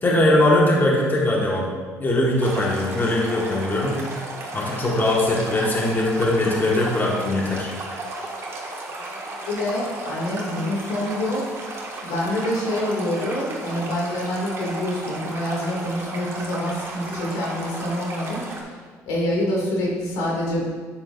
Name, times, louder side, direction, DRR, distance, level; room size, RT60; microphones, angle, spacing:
voice 1, 0.0-1.7 2.0-4.0 4.5-7.7, left 1 dB, 30° left, -3 dB, 1.6 m, -20 dB
Stream, 2.4-18.6, right 2 dB, 40° right, 1.8 m, -34 dB
voice 2, 9.3-11.4 12.0-18.8 19.1-20.7, left 1 dB, 85° left, -3 dB, 2.4 m, -26 dB
9.5 x 7.2 x 2.6 m, 1.5 s
supercardioid pair, 85°, 7 cm